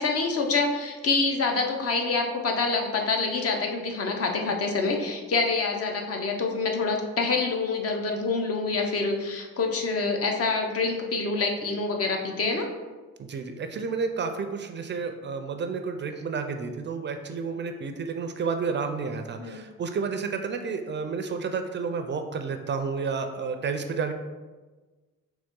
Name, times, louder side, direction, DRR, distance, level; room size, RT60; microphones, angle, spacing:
voice 1, 0.0-12.7 19.4-19.6, left 3 dB, 50° left, 2 dB, 0.7 m, -26 dB
voice 2, 13.2-24.1, right 5 dB, 40° right, 6 dB, 0.4 m, -31 dB
3.9 x 3.0 x 3.6 m, 1.3 s
cardioid pair, 90°, 30 cm